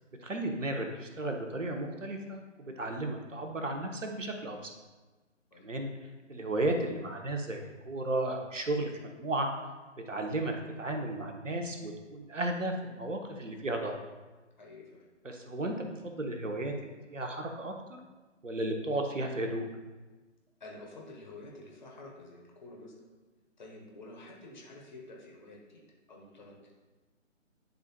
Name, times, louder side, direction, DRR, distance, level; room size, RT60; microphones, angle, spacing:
voice 1, 0.2-4.7 5.6-5.9 6.3-8.9 9.2-9.5 10.0-13.9 15.2-17.7 18.4-19.6, right 1 dB, 75° right, 3 dB, 1.0 m, -34 dB
voice 2, 14.6-15.1 20.6-22.9 23.6-25.8 26.1-26.7, left 2 dB, 35° left, -2 dB, 1.3 m, -49 dB
10.5 x 4.0 x 2.2 m, 1.2 s
figure-of-eight pair, 150°, 38 cm